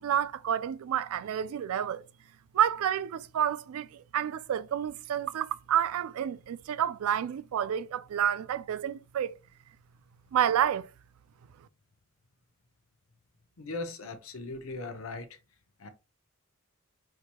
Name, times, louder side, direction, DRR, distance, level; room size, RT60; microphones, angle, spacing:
voice 1, 0.0-2.0 2.5-9.4 10.3-10.9, right 9 dB, 85° right, 0.3 m, -29 dB
voice 2, 13.6-15.4 15.8-15.9, left 3 dB, 70° left, 0.7 m, -39 dB
4.6 x 2.9 x 2.2 m
head